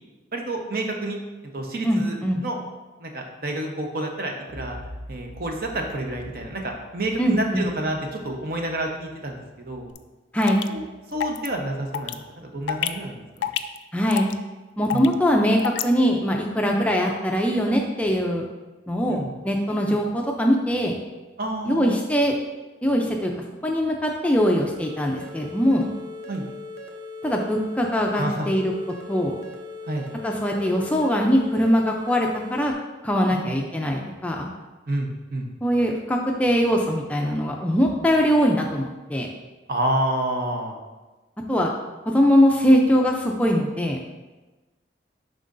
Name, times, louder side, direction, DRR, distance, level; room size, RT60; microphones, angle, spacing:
voice 1, 0.3-1.2 1.5-2.2 2.4-2.6 3.0-4.8 5.1-9.9 10.7-10.8 11.1-13.2 14.9-15.0 19.1-19.3 19.9-20.0 21.4-22.0 26.3-26.4 28.1-28.5 29.9-30.1 33.3-33.6 34.9-35.5 39.7-40.7, right 1 dB, 55° right, 2 dB, 0.8 m, -29 dB
voice 2, 1.8-2.4 7.2-7.7 10.3-10.6 13.9-14.3 14.8-18.4 18.9-21.0 21.7-22.4 22.8-23.3 23.6-25.9 27.2-28.7 29.1-29.3 30.2-32.7 33.0-34.5 35.6-39.3 41.5-41.7 42.1-44.0, equal, 10° left, 0 dB, 0.4 m, -22 dB
sound 1, 9.9-10.0 10.4-10.7 11.2-11.5 11.9-12.1 12.7-12.9 13.4-13.8 14.1-14.3 14.9-15.1 15.6-15.8, left 11 dB, 85° left, 0.3 m, -26 dB
sound 2, 24.8-32.7, left 2 dB, 85° right, 0.7 m, -39 dB
10.5 x 3.8 x 2.6 m, 1.2 s
head